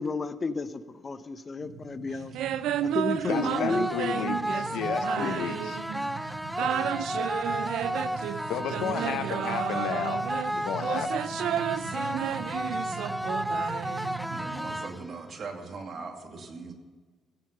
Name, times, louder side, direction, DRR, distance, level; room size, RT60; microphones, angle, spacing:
voice 1, 0.0-2.3 2.8-3.9 5.2-5.5, left 4 dB, 35° left, 11 dB, 0.8 m, -32 dB
sound 1, 1.6-14.8, right 4 dB, 70° right, 1.4 m, -43 dB
sound 2, 2.3-6.1 6.5-14.4, right 10 dB, 85° right, 0.5 m, -32 dB
voice 2, 3.3-5.8 8.5-11.2, left 9 dB, 85° left, 11 dB, 0.8 m, -33 dB
sound 3, 3.3-15.3, equal, 5° right, 0.3 m, -33 dB
voice 3, 8.8-9.2 9.4-9.5 14.3-16.7, right 4 dB, 55° right, 3 dB, 2.3 m, -40 dB
16.0 x 7.4 x 6.8 m, 1.5 s
cardioid pair, 90°, 0 cm